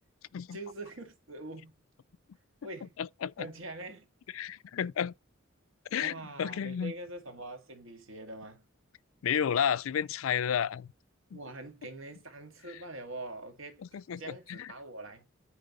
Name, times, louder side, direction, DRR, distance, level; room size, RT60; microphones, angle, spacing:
voice 1, 0.5-1.8 2.6-3.0 3.4-4.1 6.0-8.6 11.3-13.8 14.2-15.3, right 2 dB, 70° right, 2.0 m, -44 dB
voice 2, 3.0-3.5 4.3-5.1 5.9-6.1 6.4-6.9 9.2-10.9 11.3-11.4 13.9-14.2 14.5-14.7, left 8 dB, 80° left, 0.4 m, -31 dB
8.9 x 3.8 x 5.3 m
head